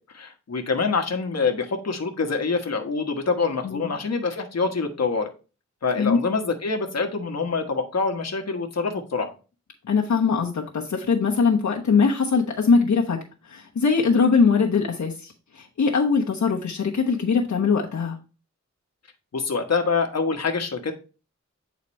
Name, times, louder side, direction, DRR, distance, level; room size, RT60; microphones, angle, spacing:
voice 1, 0.1-5.3 5.8-9.3 19.3-20.9, left 4 dB, 60° left, 4 dB, 1.2 m, -25 dB
voice 2, 3.6-3.9 6.0-6.2 9.8-13.2 13.5-18.2, left 5 dB, 80° left, -1 dB, 1.1 m, -21 dB
8.4 x 4.1 x 3.1 m, 0.33 s
wide cardioid pair, 85°, 29 cm